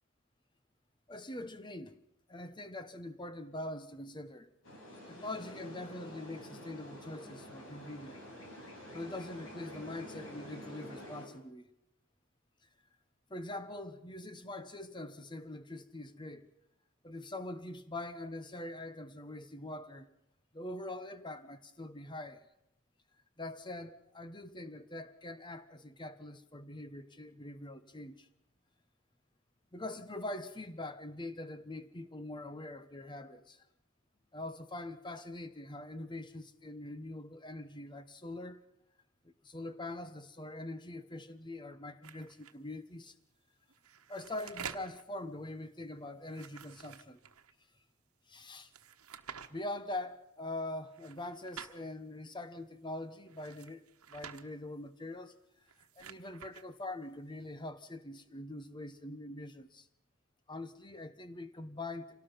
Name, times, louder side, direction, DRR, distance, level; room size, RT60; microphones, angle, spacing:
voice 1, 1.1-2.0 2.3-4.5 5.1-8.2 8.9-11.7 13.3-16.5 17.0-20.1 20.5-22.4 23.4-28.3 29.7-33.6 34.3-38.6 39.2-43.1 44.1-47.2 48.3-48.7 49.5-55.4 56.0-59.9 60.5-62.2, left 2 dB, 20° left, 1.1 m, -43 dB
sound 1, 4.6-11.3, equal, 65° left, 5.3 m, -48 dB
sound 2, 42.0-42.5 43.7-45.0 46.2-47.5 48.7-49.5 50.9-51.8 53.3-54.4 55.6-56.6, right 7 dB, 85° right, 1.2 m, -49 dB
26.5 x 18.5 x 5.8 m
head